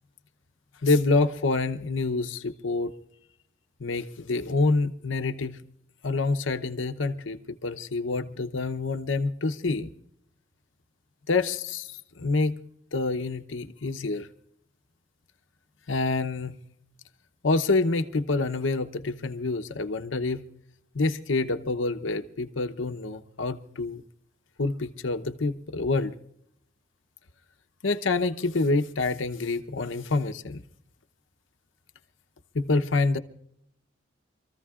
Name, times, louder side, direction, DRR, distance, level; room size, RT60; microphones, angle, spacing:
voice 1, 0.8-2.9 3.8-5.6 6.0-9.9 11.3-12.5 12.9-14.3 15.9-16.5 17.4-20.4 20.9-24.0 24.6-26.1 27.8-30.6 32.5-33.2, left 3 dB, 80° left, 8 dB, 0.8 m, -27 dB
26.5 x 14.5 x 2.4 m, 0.74 s
head